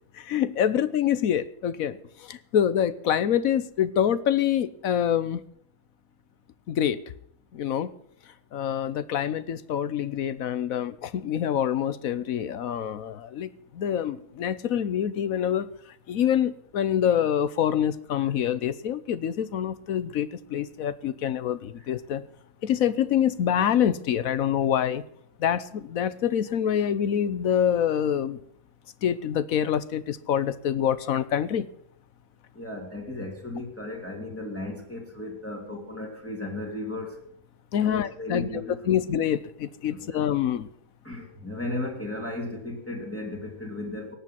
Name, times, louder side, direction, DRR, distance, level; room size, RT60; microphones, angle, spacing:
voice 1, 0.1-5.4 6.7-7.0 7.5-7.9 8.5-15.7 16.1-22.2 22.6-25.0 25.4-28.4 29.0-31.7 37.7-40.7, left 9 dB, 75° left, 15 dB, 1.2 m, -26 dB
voice 2, 32.5-37.2 37.8-39.0 39.9-40.2 41.0-44.2, left 2 dB, 10° left, -1 dB, 2.9 m, -35 dB
18.0 x 6.9 x 9.3 m, 0.70 s
omnidirectional pair, 1.5 m